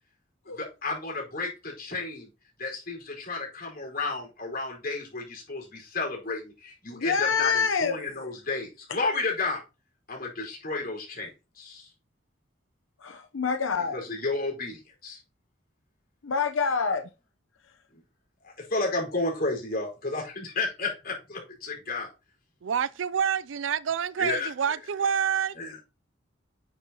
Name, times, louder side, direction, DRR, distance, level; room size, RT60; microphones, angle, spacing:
voice 1, 0.5-2.3 2.6-9.6 10.1-11.9 13.8-15.2 17.9-18.0 18.4-22.1 24.2-24.5 25.6-25.8, left 3 dB, 50° left, 4.7 m, -32 dB
voice 2, 6.9-8.0 13.0-14.0 16.2-17.1, left 5 dB, 85° left, 0.8 m, -26 dB
voice 3, 22.6-25.6, right 7 dB, 70° right, 0.4 m, -27 dB
9.6 x 7.0 x 2.9 m
head